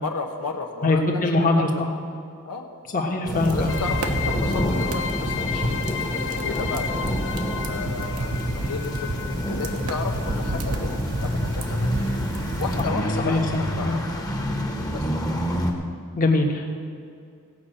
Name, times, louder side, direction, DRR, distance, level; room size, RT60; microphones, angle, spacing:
voice 1, 0.0-1.8 2.4-2.7 3.5-7.0 7.6-12.2 12.6-14.3 14.9-15.1, left 4 dB, 85° left, 3 dB, 1.1 m, -34 dB
voice 2, 0.8-1.9 2.9-3.7 12.9-14.0 16.1-16.7, left 2 dB, 40° left, 1 dB, 1.4 m, -22 dB
sound 1, 3.2-15.7, equal, 15° left, 1.2 m, -28 dB
sound 2, 3.3-12.8, right 2 dB, 70° right, 1.1 m, -31 dB
sound 3, 3.7-13.0, left 7 dB, 60° left, 0.7 m, -34 dB
17.0 x 5.7 x 7.8 m, 2.3 s
head